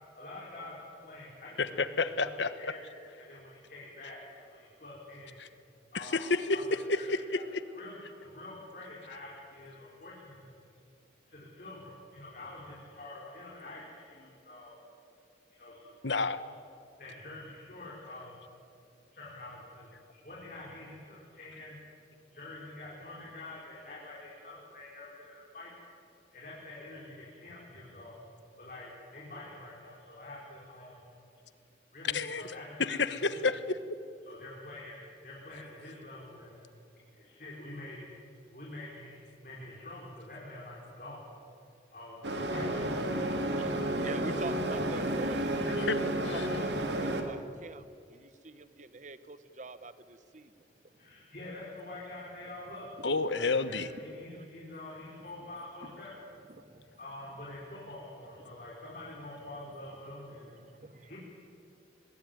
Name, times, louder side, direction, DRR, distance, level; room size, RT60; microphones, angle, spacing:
voice 1, 0.1-2.8 3.2-5.3 5.9-7.4 7.7-10.5 11.3-14.8 15.5-16.0 17.0-18.4 19.1-21.8 22.3-25.7 26.3-28.2 28.6-31.1 31.9-33.4 34.2-36.6 37.1-38.1 38.5-41.2 41.9-43.8 51.0-53.0 53.3-56.2 57.0-60.5 60.9-61.2, left 2 dB, 45° left, -5 dB, 5.1 m, -47 dB
voice 2, 1.6-2.7 5.4-5.5 5.9-6.4 6.9-7.6 16.0-16.4 32.0-32.4 32.8-33.8 45.7-46.5 53.0-53.9, left 3 dB, 75° left, 13 dB, 1.2 m, -30 dB
sound 1, 42.2-47.2, right 1 dB, 70° right, 2.5 m, -31 dB
voice 3, 43.9-45.7 46.3-47.8 48.1-50.5 54.1-54.4 55.8-55.9 56.5-57.0 58.4-58.5 60.6-61.1, right 2 dB, 40° right, 13 dB, 1.1 m, -45 dB
23.5 x 21.5 x 9.5 m, 2.5 s
head